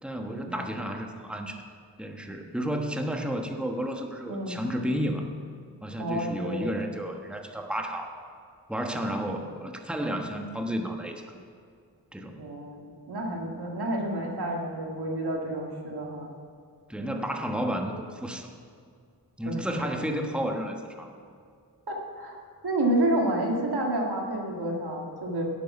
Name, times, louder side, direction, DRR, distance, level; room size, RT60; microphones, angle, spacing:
voice 1, 0.0-1.6 2.0-5.3 5.8-8.2 8.7-11.2 12.1-12.4 16.9-18.5 19.4-21.1, equal, 5° right, 3 dB, 1.3 m, -32 dB
voice 2, 6.0-6.7 12.4-16.3 19.5-20.0 21.9-22.4 22.6-25.4, right 1 dB, 80° right, 0 dB, 1.9 m, -30 dB
11.0 x 8.8 x 5.9 m, 2.2 s
cardioid pair, 40°, 38 cm